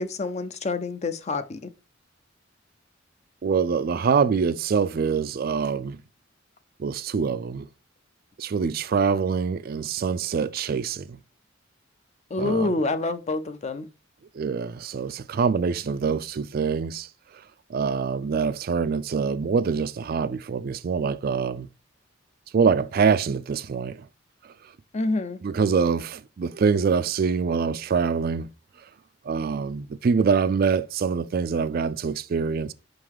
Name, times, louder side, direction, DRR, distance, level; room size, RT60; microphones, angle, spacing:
voice 1, 0.0-1.7 12.3-13.9 24.9-25.4, left 3 dB, 35° left, 0.5 m, -27 dB
voice 2, 3.4-6.0 6.8-7.7 8.4-11.2 12.4-12.7 14.3-17.1 17.7-21.7 22.5-24.0 25.4-28.5 29.3-32.7, right 5 dB, 50° right, 0.4 m, -25 dB
5.3 x 3.8 x 4.6 m
head